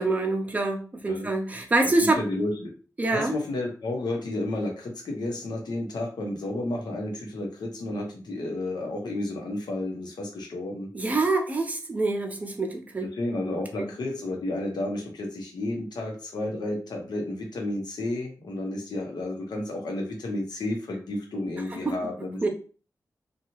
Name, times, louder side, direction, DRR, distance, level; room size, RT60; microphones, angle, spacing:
voice 1, 0.0-2.2 3.0-3.3 10.9-13.1 13.8-13.9 21.8-21.9 22.4-22.5, right 2 dB, 20° right, 3 dB, 0.5 m, -25 dB
voice 2, 2.0-2.7 3.1-10.9 13.2-22.4, left 1 dB, 90° left, 1 dB, 0.9 m, -31 dB
2.8 x 2.3 x 3.0 m, 0.38 s
wide cardioid pair, 155°, 7 cm